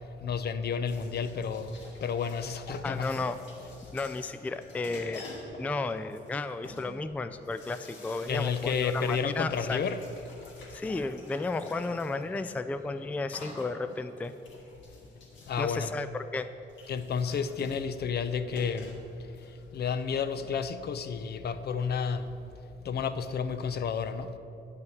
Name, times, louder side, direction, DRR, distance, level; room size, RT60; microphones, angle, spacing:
voice 1, 0.2-3.2 8.3-10.0 15.5-15.9 16.9-19.0 19.7-22.3 22.8-24.3, left 6 dB, 55° left, 11 dB, 0.6 m, -31 dB
sound 1, 0.9-20.5, left 2 dB, 70° left, 2.2 m, -49 dB
voice 2, 2.8-3.4 3.9-5.3 5.6-9.8 10.7-14.3 15.6-16.5, left 3 dB, 5° left, 11 dB, 0.3 m, -33 dB
9.2 x 5.8 x 7.9 m, 2.8 s
cardioid pair, 90°, 20 cm